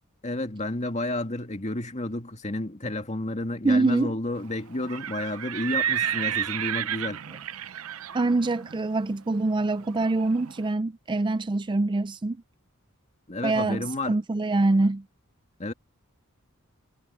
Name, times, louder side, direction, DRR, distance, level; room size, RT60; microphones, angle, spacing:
voice 1, 0.2-7.2 13.3-14.2 15.6-15.7, left 1 dB, 35° left, 2.1 m, -31 dB
voice 2, 3.6-4.1 8.1-12.4 13.4-15.0, right 2 dB, 20° right, 0.4 m, -24 dB
Livestock farm animals working animals, 4.7-10.6, right 9 dB, 80° right, 0.7 m, -32 dB
head